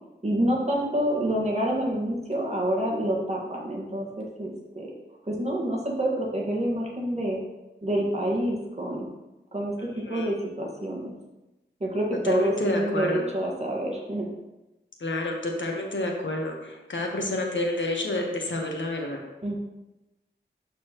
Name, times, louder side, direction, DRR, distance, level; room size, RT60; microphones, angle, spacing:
voice 1, 0.2-4.9 5.2-7.4 7.8-9.1 9.5-11.1 11.8-14.3 19.4-19.6, right 1 dB, 35° right, -2 dB, 1.7 m, -27 dB
voice 2, 12.2-13.3 15.0-19.2, left 2 dB, 75° left, 1 dB, 1.3 m, -29 dB
11.5 x 4.1 x 3.1 m, 1.0 s
wide cardioid pair, 70°, 20 cm